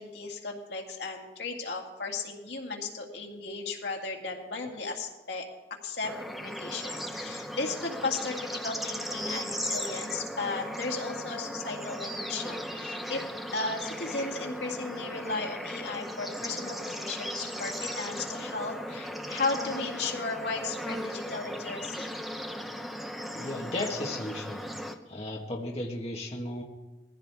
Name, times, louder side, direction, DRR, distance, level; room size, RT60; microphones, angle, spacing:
voice 1, 0.0-5.5 5.8-13.2 13.5-22.2, left 3 dB, 80° left, 1 dB, 2.2 m, -35 dB
Bird / Insect / Frog, 6.0-24.9, equal, ahead, 0.7 m, -37 dB
voice 2, 23.3-24.7 25.1-26.6, left 1 dB, 35° left, -1 dB, 1.4 m, -35 dB
21.0 x 15.0 x 3.5 m, 1.2 s
head